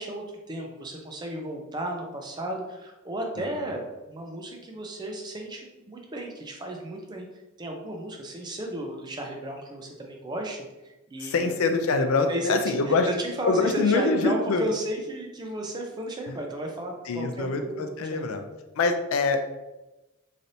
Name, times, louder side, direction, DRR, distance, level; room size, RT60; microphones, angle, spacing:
voice 1, 0.0-3.8 4.1-7.3 7.6-11.5 12.3-18.4, right 1 dB, 20° right, 1 dB, 0.4 m, -34 dB
voice 2, 11.2-13.1 13.4-14.7 16.3-16.4 17.1-18.4 18.8-19.4, left 4 dB, 75° left, 7 dB, 0.4 m, -24 dB
3.2 x 2.6 x 2.6 m, 1.1 s
head